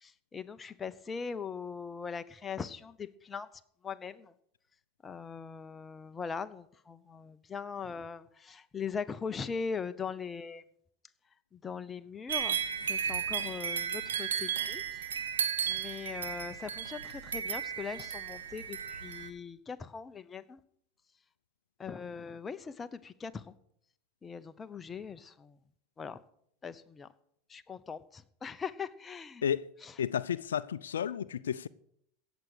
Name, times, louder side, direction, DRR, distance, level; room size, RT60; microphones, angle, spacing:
voice 1, 0.0-3.5 3.8-4.3 5.0-10.6 11.5-12.6 12.9-14.8 15.7-20.6 21.8-23.4 24.2-25.6 26.0-26.2 26.6-27.1 27.5-29.4, left 6 dB, 20° left, 0.8 m, -40 dB
sound 1, 12.3-19.3, right 8 dB, 90° right, 1.3 m, -34 dB
voice 2, 30.0-31.7, left 8 dB, 85° left, 0.4 m, -32 dB
16.5 x 7.3 x 6.6 m
hypercardioid pair, 100°, 0 cm